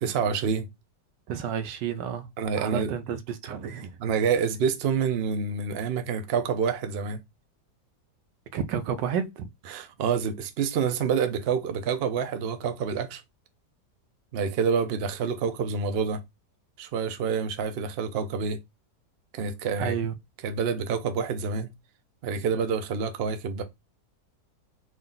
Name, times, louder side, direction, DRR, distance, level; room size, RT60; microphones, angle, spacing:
voice 1, 0.0-0.7 2.4-2.9 4.0-7.2 9.7-13.2 14.3-16.2 16.8-18.6 19.3-19.9 20.4-21.7 22.2-23.6, right 6 dB, 70° right, 0.5 m, -27 dB
voice 2, 1.3-2.3 2.6-3.9 8.5-9.5 19.8-20.1, right 8 dB, 85° right, 1.2 m, -30 dB
3.7 x 2.5 x 3.7 m
omnidirectional pair, 1.9 m